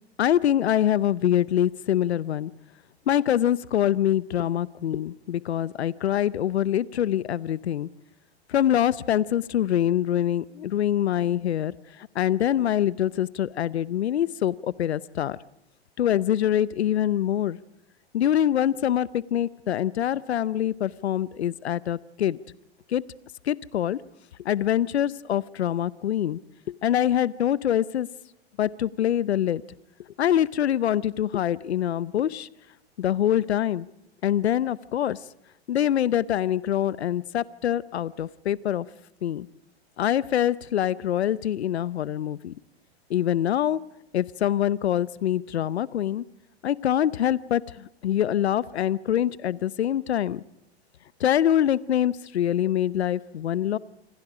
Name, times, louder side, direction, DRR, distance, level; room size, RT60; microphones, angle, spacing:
voice 1, 0.2-2.5 3.1-7.9 8.5-15.4 16.0-17.6 18.1-22.4 22.9-23.0 23.4-24.0 24.4-26.4 26.7-28.1 28.6-29.6 30.2-32.5 33.0-33.9 34.2-35.2 35.7-38.9 39.2-39.5 40.0-42.5 43.1-43.8 44.1-46.2 46.6-50.4 51.2-53.8, left 11 dB, 85° left, 19 dB, 0.8 m, -24 dB
27.0 x 26.0 x 5.0 m, 0.82 s
hypercardioid pair, 115°, 32 cm